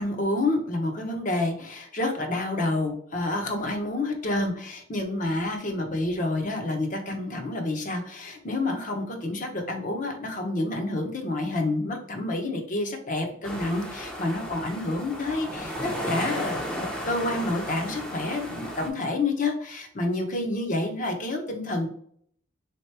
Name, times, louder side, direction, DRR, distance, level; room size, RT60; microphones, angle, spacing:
voice 1, 0.0-21.9, left 2 dB, 40° left, 3 dB, 0.8 m, -29 dB
sound 1, 13.4-18.9, equal, 5° left, 0.6 m, -34 dB
3.7 x 2.9 x 3.3 m, 0.63 s
head